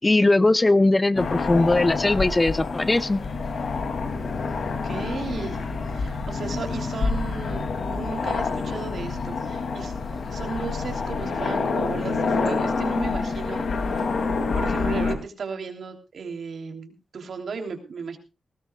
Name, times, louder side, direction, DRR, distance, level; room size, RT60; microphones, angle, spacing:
voice 1, 0.0-3.2, left 2 dB, 20° left, 16 dB, 0.6 m, -20 dB
sound 1, 1.2-15.2, left 4 dB, 65° left, 2.6 m, -27 dB
voice 2, 4.6-5.6 5.9-9.9 10.3-14.0 14.5-18.2, right 5 dB, 65° right, 5 dB, 3.2 m, -35 dB
19.0 x 18.0 x 2.3 m, 0.29 s
wide cardioid pair, 110°, 0 cm